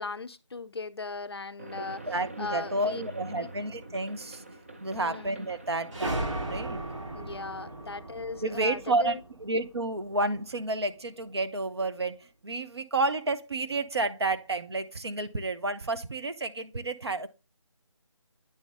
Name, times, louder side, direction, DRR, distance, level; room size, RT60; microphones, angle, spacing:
voice 1, 0.0-2.1 2.4-3.0 3.3-3.5 4.9-5.3 7.1-9.2, left 4 dB, 50° left, 0.5 m, -38 dB
sound 1, 1.6-7.7, right 2 dB, 25° right, 0.4 m, -46 dB
voice 2, 1.8-4.4 4.8-6.8 8.4-12.2 12.4-17.3, right 2 dB, 55° right, 0.8 m, -30 dB
sound 2, 5.9-10.4, right 1 dB, 70° right, 4.3 m, -36 dB
9.7 x 4.0 x 3.5 m
figure-of-eight pair, 160°, 17 cm